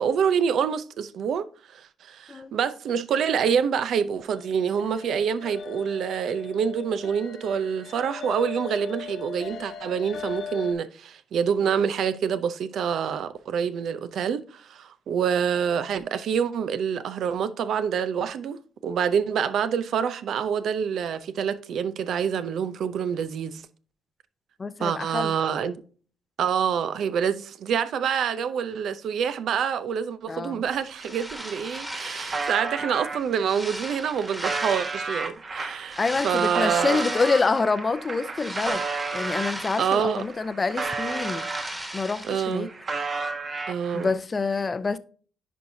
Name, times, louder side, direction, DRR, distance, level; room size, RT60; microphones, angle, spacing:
voice 1, 0.0-1.5 1.7-23.6 24.8-25.8 26.4-37.0 39.8-40.2 42.3-42.7 43.7-44.1, right 7 dB, 70° right, 0.6 m, -26 dB
sound 1, 4.3-10.7, left 7 dB, 60° left, 1.0 m, -39 dB
voice 2, 24.6-25.3 30.3-30.6 36.0-38.8 39.1-41.5 41.9-42.7 43.9-45.0, left 4 dB, 30° left, 0.6 m, -26 dB
sound 2, 30.7-32.7 33.2-35.2 35.8-37.7 38.1-40.3 40.6-42.5, right 1 dB, 10° right, 1.6 m, -37 dB
sound 3, 31.3-31.4 31.6-33.2 33.8-39.6 40.1-42.0 42.3-44.1, right 4 dB, 40° right, 1.2 m, -32 dB
10.0 x 4.5 x 2.7 m
cardioid pair, 90°, 0 cm